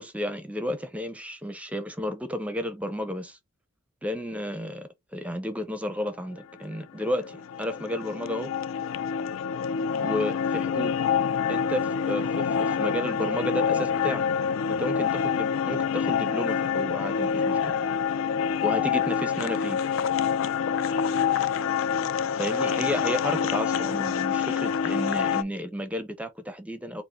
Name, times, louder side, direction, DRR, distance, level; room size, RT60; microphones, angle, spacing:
voice 1, 0.0-3.4 4.0-8.5 10.0-11.0 11.5-14.3 14.8-17.7 18.6-19.8 22.4-27.0, equal, 5° right, 0.5 m, -32 dB
sound 1, 6.6-25.4, left 7 dB, 75° left, 0.4 m, -26 dB
4.6 x 2.0 x 4.4 m
head